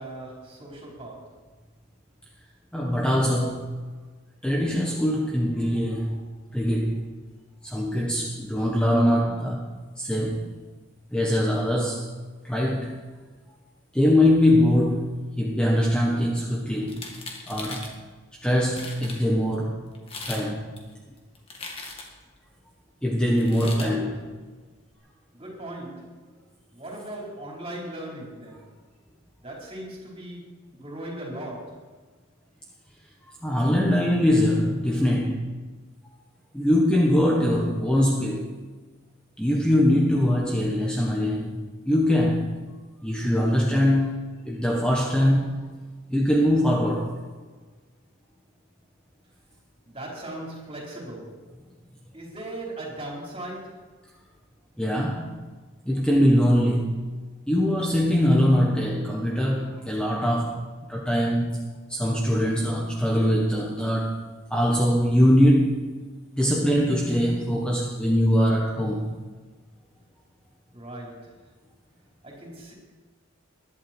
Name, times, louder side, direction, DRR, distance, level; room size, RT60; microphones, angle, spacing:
voice 1, 0.0-1.5 23.6-24.3 25.3-26.1 26.7-28.6 29.4-31.9 49.9-51.4 52.1-53.8 70.7-71.3 72.2-72.7, right 1 dB, 25° right, -3 dB, 4.5 m, -38 dB
voice 2, 2.7-3.7 4.4-6.2 6.5-7.1 7.6-10.5 11.1-12.1 12.4-13.0 13.9-17.0 17.5-17.9 18.4-19.8 20.3-20.7 23.0-24.1 33.4-35.5 36.5-38.6 39.4-42.6 43.0-45.5 46.1-47.2 54.8-55.4 55.8-57.0 57.5-60.6 60.9-61.6 61.9-64.2 64.5-65.9 66.4-69.1, equal, 5° left, -2 dB, 1.4 m, -22 dB
sound 1, 16.9-17.9 18.5-18.6 18.7-19.2 19.9-20.5 20.8-22.2 23.4-23.9, left 3 dB, 25° left, 2.1 m, -38 dB
21.0 x 11.5 x 4.6 m, 1.3 s
head